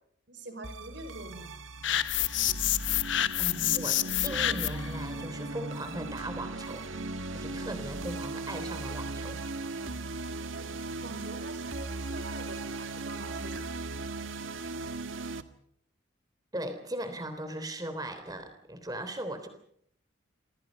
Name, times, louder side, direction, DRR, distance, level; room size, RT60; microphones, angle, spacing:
voice 1, 0.3-1.5 10.4-10.7 11.0-13.7, right 2 dB, 60° right, 8 dB, 5.4 m, -45 dB
sound 1, 0.6-15.4, right 2 dB, 80° right, 1.6 m, -38 dB
sound 2, 1.8-4.9, left 12 dB, 70° left, 1.1 m, -28 dB
voice 2, 3.4-6.9 7.3-9.4 16.5-19.5, right 1 dB, 20° right, 8 dB, 3.5 m, -38 dB
28.0 x 25.0 x 5.4 m, 0.68 s
head